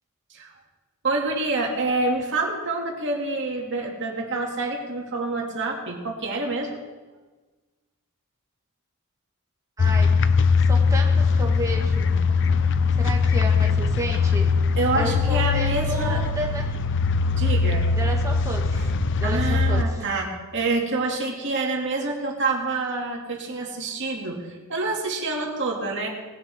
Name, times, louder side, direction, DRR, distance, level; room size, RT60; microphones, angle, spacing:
voice 1, 1.0-6.8 14.8-16.2 17.4-17.9 19.2-24.4 24.7-26.1, right 3 dB, 55° right, -1 dB, 2.4 m, -27 dB
sound 1, 9.8-19.8, left 4 dB, 55° left, 0.5 m, -21 dB
voice 2, 9.8-10.1 10.6-12.1 12.9-14.5 14.9-16.8 17.9-20.0, right 1 dB, 15° right, 1 dB, 1.6 m, -32 dB
19.0 x 11.0 x 3.6 m, 1.2 s
head